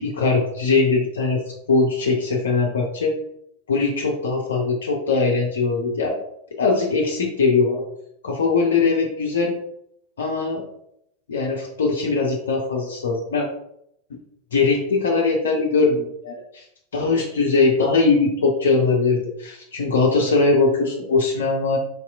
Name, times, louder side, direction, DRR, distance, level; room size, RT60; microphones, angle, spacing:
voice 1, 0.0-1.4 1.7-3.1 3.7-6.2 6.6-7.8 8.2-9.5 10.2-10.6 11.3-13.5 14.5-16.6 16.9-21.8, left 4 dB, 65° left, 0 dB, 0.5 m, -21 dB
4.6 x 2.8 x 2.3 m, 0.75 s
figure-of-eight pair, 90°, 0 cm